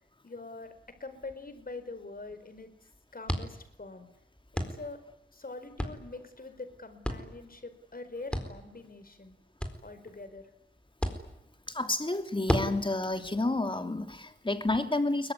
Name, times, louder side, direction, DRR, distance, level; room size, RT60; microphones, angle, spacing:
voice 1, 0.2-2.7 3.1-4.1 4.5-5.0 5.3-9.4 9.8-10.5, left 3 dB, 45° left, 10 dB, 4.9 m, -44 dB
sound 1, 0.6-14.8, equal, 5° left, 4.2 m, -39 dB
voice 2, 11.7-15.3, left 2 dB, 25° left, 7 dB, 2.9 m, -30 dB
25.0 x 23.5 x 9.9 m, 0.78 s
wide cardioid pair, 110°, 21 cm